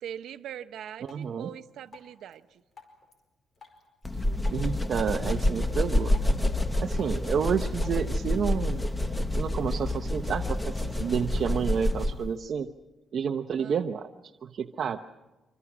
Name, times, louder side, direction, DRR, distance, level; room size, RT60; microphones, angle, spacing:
voice 1, 0.0-2.6 13.6-13.8, right 10 dB, 90° right, 10 dB, 0.8 m, -42 dB
Drip, 1.0-8.0, left 4 dB, 35° left, 5.0 m, -55 dB
voice 2, 1.0-1.5 4.5-6.1 6.8-8.8 9.3-12.7 13.1-14.1 14.4-15.0, right 7 dB, 55° right, 6 dB, 0.7 m, -30 dB
sound 1, 4.0-12.3, left 1 dB, 10° left, 0.9 m, -28 dB
26.0 x 25.5 x 6.1 m, 1.1 s
cardioid pair, 150°, 0 cm